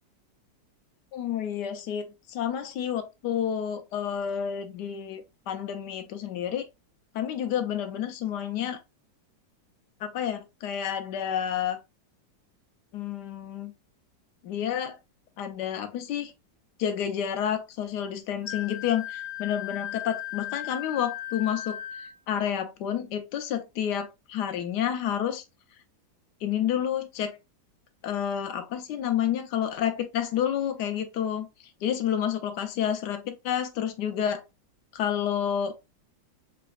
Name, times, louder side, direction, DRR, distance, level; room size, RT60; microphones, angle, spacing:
voice 1, 1.1-6.6 7.1-8.8 10.0-11.8 12.9-13.7 14.4-15.0 15.4-16.3 16.8-25.4 26.4-27.4 28.0-31.5 31.8-34.4 34.9-35.7, left 9 dB, 70° left, 1.1 m, -30 dB
Wind instrument woodwind instrument, 18.4-22.2, left 13 dB, ahead, 1.6 m, -36 dB
3.9 x 3.4 x 2.3 m
omnidirectional pair, 2.0 m